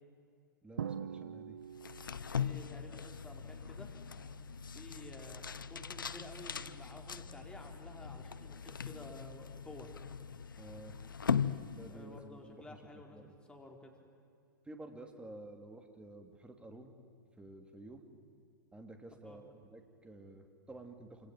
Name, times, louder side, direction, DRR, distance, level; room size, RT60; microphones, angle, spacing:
voice 1, 0.6-1.6 10.6-11.0 11.7-12.8 13.1-13.4 14.6-16.9 17.4-18.0 18.7-21.3, right 2 dB, 10° right, 5 dB, 3.0 m, -51 dB
Drum, 0.8-2.5, right 8 dB, 70° right, 0.8 m, -42 dB
sound 1, 1.6-8.6, right 3 dB, 90° right, 4.2 m, -62 dB
sound 2, 1.8-12.3, left 7 dB, 80° left, 0.9 m, -40 dB
voice 2, 2.2-3.9 4.7-10.0 11.9-13.9 19.2-19.4, left 1 dB, 10° left, 2 dB, 4.4 m, -52 dB
27.5 x 27.0 x 7.7 m, 2.4 s
hypercardioid pair, 105°, 11 cm